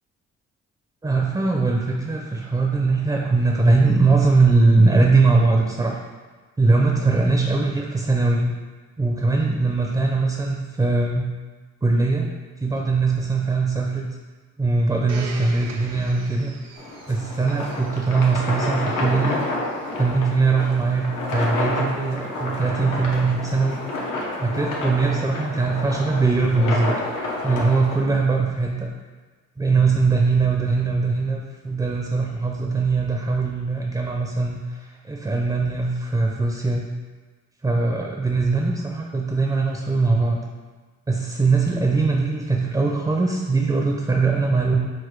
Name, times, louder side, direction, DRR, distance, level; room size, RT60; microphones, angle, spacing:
voice 1, 1.0-6.0 6.6-8.5 9.0-11.3 11.8-12.3 12.6-14.1 14.6-16.5 17.1-19.4 20.0-23.8 24.4-26.9 27.4-28.9 29.6-34.8 35.0-36.9 37.6-40.4 41.1-44.7, right 3 dB, 15° right, 0 dB, 0.5 m, -21 dB
Domestic sounds home sounds, 15.1-19.9 20.7-20.8, right 4 dB, 60° right, 0.6 m, -42 dB
sound 1, 16.8-28.0, left 2 dB, 90° left, 0.9 m, -29 dB
4.0 x 2.5 x 4.5 m, 1.4 s
cardioid pair, 80°, 30 cm